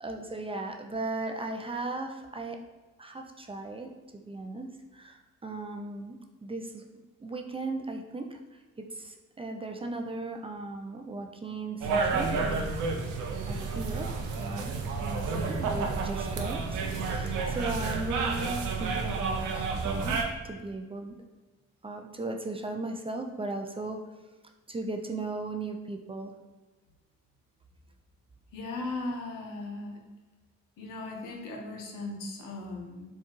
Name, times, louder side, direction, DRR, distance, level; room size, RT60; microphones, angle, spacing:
voice 1, 0.0-2.6 3.0-3.9 4.3-6.8 7.2-8.4 8.9-12.7 13.5-14.1 14.4-14.7 15.0-20.2 20.4-21.2 21.8-24.0 24.7-26.3, right 2 dB, 20° right, 4 dB, 0.3 m, -37 dB
sound 1, 11.8-20.2, right 4 dB, 70° right, 0.6 m, -30 dB
voice 2, 28.5-30.0 30.8-33.1, left 2 dB, 90° left, 1 dB, 0.7 m, -37 dB
4.4 x 2.3 x 3.0 m, 1.2 s
cardioid pair, 75°, 32 cm